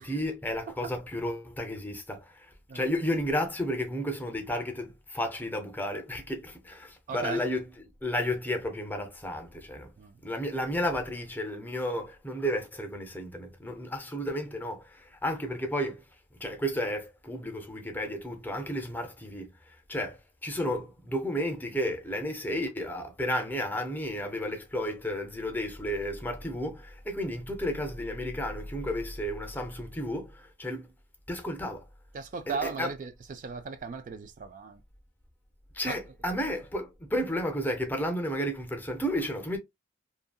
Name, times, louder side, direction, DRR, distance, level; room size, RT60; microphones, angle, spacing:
voice 1, 0.0-7.6 8.0-9.9 10.2-16.0 16.4-19.5 19.9-30.9 31.3-31.8 32.5-32.9 35.7-39.6, equal, 10° left, 0.5 m, -32 dB
voice 2, 7.1-7.4 10.0-10.2 32.1-34.8 35.8-36.0, right 5 dB, 45° right, 0.3 m, -37 dB
2.7 x 2.6 x 2.2 m
head